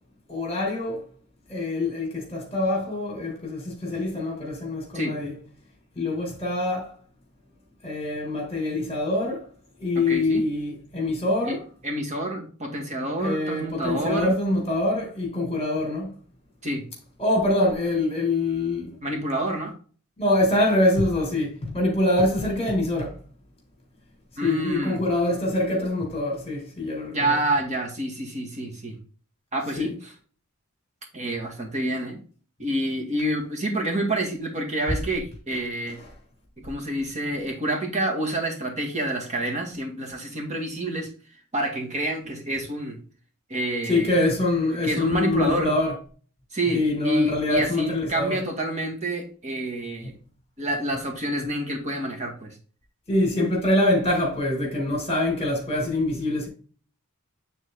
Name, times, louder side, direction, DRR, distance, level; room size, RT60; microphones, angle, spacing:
voice 1, 0.3-1.0 1.5-5.3 6.0-6.9 7.8-9.5 9.8-11.6 13.2-16.1 17.2-19.0 20.2-23.2 24.4-27.4 29.8-29.9 36.0-36.1 43.8-45.9 46.7-48.4 53.1-56.5, left 1 dB, 30° left, 2.5 m, -24 dB
voice 2, 10.0-10.4 11.4-11.6 11.8-14.3 16.6-16.8 19.0-19.7 24.4-25.0 27.1-28.9 29.5-30.1 31.1-32.2 32.6-36.0 36.6-41.1 41.5-43.0 43.5-44.1 44.7-45.7 46.5-50.1 50.6-52.5, right 1 dB, 35° right, 2.0 m, -28 dB
9.1 x 3.9 x 3.9 m
head